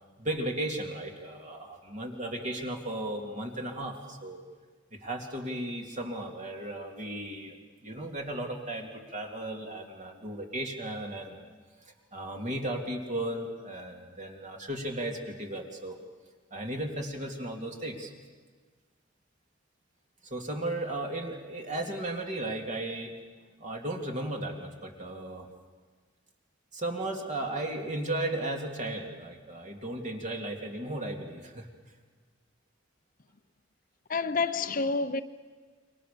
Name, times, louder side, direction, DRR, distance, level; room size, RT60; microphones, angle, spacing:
voice 1, 0.2-4.4 4.9-7.6 7.8-11.5 12.1-16.0 16.5-18.1 20.2-23.1 23.6-25.5 26.7-31.7, right 1 dB, 40° right, 2.9 m, -35 dB
voice 2, 34.1-35.2, left 4 dB, 45° left, 0.7 m, -28 dB
28.5 x 24.0 x 6.9 m
head